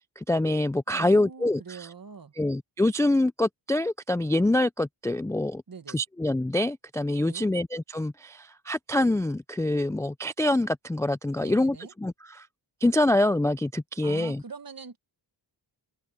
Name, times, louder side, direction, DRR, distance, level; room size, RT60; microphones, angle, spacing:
voice 1, 0.2-1.9 2.4-5.6 5.9-12.5 12.8-14.4, left 1 dB, 5° left, 0.3 m, -25 dB
voice 2, 0.9-2.3 5.7-6.0 7.3-7.5 11.4-11.9 14.0-15.0, right 5 dB, 45° right, 1.6 m, -43 dB
open air
cardioid pair, 65°, 49 cm